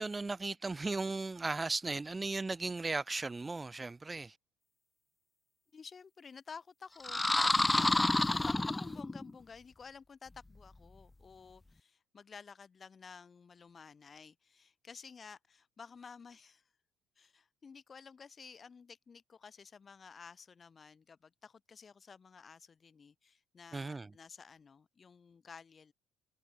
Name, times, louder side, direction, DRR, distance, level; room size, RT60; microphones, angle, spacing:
voice 1, 0.0-4.4 23.7-24.1, right 3 dB, 20° right, 2.8 m, -36 dB
voice 2, 5.7-7.2 7.6-16.6 17.2-25.9, left 5 dB, 35° left, 3.6 m, -53 dB
sound 1, 7.0-9.3, left 2 dB, 15° left, 0.4 m, -29 dB
figure-of-eight pair, 50°, 0 cm